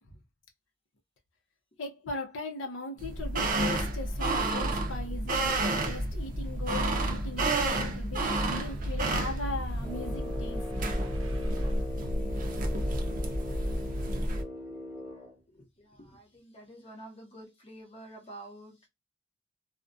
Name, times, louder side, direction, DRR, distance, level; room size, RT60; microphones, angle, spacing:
voice 1, 1.8-10.7, left 2 dB, 70° left, 0.6 m, -39 dB
sound 1, 3.0-14.4, right 2 dB, 45° right, 0.5 m, -30 dB
Boom, 8.7-15.2, right 1 dB, 90° right, 0.6 m, -43 dB
Brass instrument, 9.8-15.4, left 2 dB, 10° right, 0.8 m, -40 dB
voice 2, 15.5-18.9, right 1 dB, 30° left, 0.8 m, -49 dB
2.4 x 2.1 x 2.5 m
head